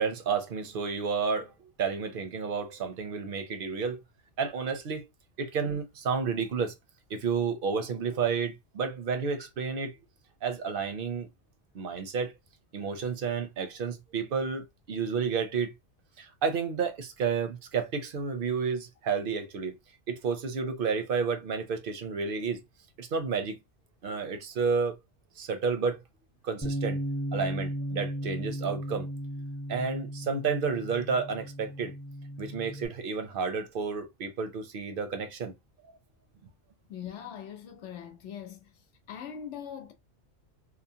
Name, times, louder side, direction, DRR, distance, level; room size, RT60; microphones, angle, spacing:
voice 1, 0.0-1.5 1.8-4.0 4.4-5.0 5.4-6.8 7.1-9.9 10.4-11.3 11.7-12.3 12.7-15.7 16.2-19.8 20.1-22.6 23.0-23.6 24.0-25.0 25.4-26.0 26.4-27.0 27.3-29.1 29.7-31.9 32.4-35.5, right 5 dB, 55° right, 0.7 m, -31 dB
Bass guitar, 26.6-32.9, equal, 15° left, 0.8 m, -35 dB
voice 2, 36.9-38.7 39.1-39.9, left 8 dB, 75° left, 1.0 m, -41 dB
3.0 x 2.0 x 2.7 m
omnidirectional pair, 1.2 m